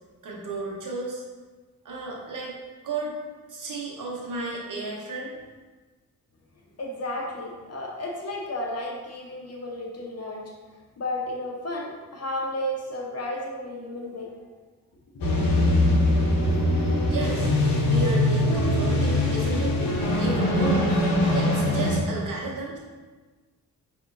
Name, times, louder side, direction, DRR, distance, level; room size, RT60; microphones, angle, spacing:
voice 1, 0.2-1.2 1.8-2.5 2.8-3.1 3.5-5.3 17.1-17.5 17.9-19.8 20.2-20.9 21.3-22.8, right 2 dB, 60° right, -2 dB, 1.0 m, -33 dB
voice 2, 6.8-10.4 11.0-14.3 15.1-15.2, left 1 dB, 45° left, -2 dB, 0.8 m, -33 dB
sound 1, 15.2-22.0, left 1 dB, 75° left, 0.8 m, -22 dB
4.8 x 2.7 x 2.5 m, 1.3 s
cardioid pair, 65°, 35 cm